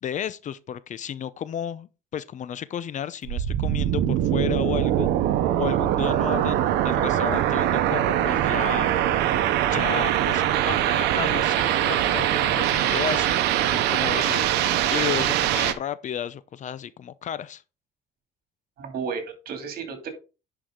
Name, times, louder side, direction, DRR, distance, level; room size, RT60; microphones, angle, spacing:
voice 1, 0.0-5.1 5.6-8.9 9.7-13.4 13.6-17.6, left 9 dB, 45° left, 0.6 m, -33 dB
sound 1, 3.3-15.7, right 12 dB, 90° right, 0.9 m, -22 dB
voice 2, 18.8-20.1, right 5 dB, 60° right, 2.6 m, -33 dB
10.5 x 4.8 x 3.7 m
cardioid pair, 110°, 17 cm